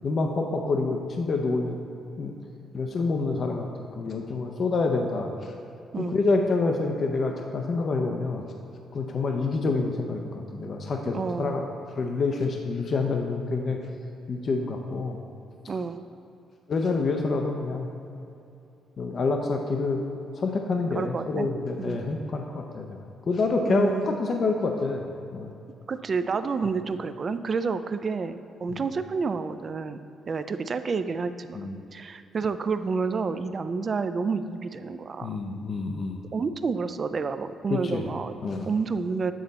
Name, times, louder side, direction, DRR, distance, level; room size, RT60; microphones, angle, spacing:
voice 1, 0.0-1.8 2.2-2.3 2.7-3.7 4.0-5.3 6.0-8.4 8.9-11.6 12.0-13.8 14.3-15.2 16.7-17.9 19.0-20.0 20.4-23.0 23.3-25.0 25.3-25.5 28.7-28.8 31.5-31.8 35.2-36.2 37.7-38.0 38.4-38.7, left 3 dB, 50° left, 3 dB, 0.5 m, -27 dB
voice 2, 11.1-11.6 15.7-16.0 20.9-21.5 21.8-22.0 23.6-24.2 25.9-30.0 30.3-35.4 36.3-38.3 38.7-39.3, right 4 dB, 40° right, 11 dB, 0.3 m, -29 dB
8.6 x 4.1 x 4.0 m, 2.7 s
cardioid pair, 90°, 0 cm